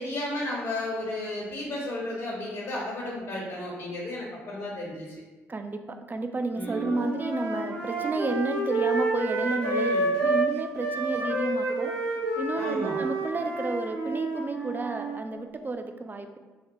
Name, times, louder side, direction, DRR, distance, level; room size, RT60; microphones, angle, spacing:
voice 1, 0.0-5.1 6.5-6.9 9.7-10.1 12.6-13.0, left 1 dB, 60° left, -5 dB, 1.0 m, -33 dB
voice 2, 5.5-9.9 10.2-11.9 12.4-16.4, right 3 dB, 25° right, 7 dB, 0.4 m, -31 dB
sound 1, 6.6-10.5 10.8-15.2, right 2 dB, 65° right, 1.0 m, -29 dB
4.0 x 2.1 x 3.0 m, 1.2 s
hypercardioid pair, 50°, 7 cm